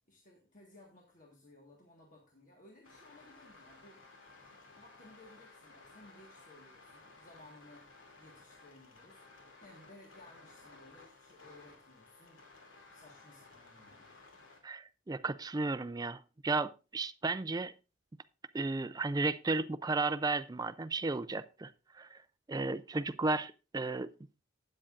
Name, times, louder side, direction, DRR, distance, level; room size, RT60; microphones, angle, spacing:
voice 1, 0.1-4.0 4.5-7.8 8.2-9.2 9.6-12.4 12.9-14.1, left 1 dB, 40° left, 1.5 m, -59 dB
sound 1, 2.8-14.6, left 3 dB, 80° left, 2.6 m, -57 dB
voice 2, 14.6-17.7 18.5-22.2 22.5-24.1, right 3 dB, 20° right, 0.4 m, -34 dB
13.0 x 8.7 x 2.5 m
head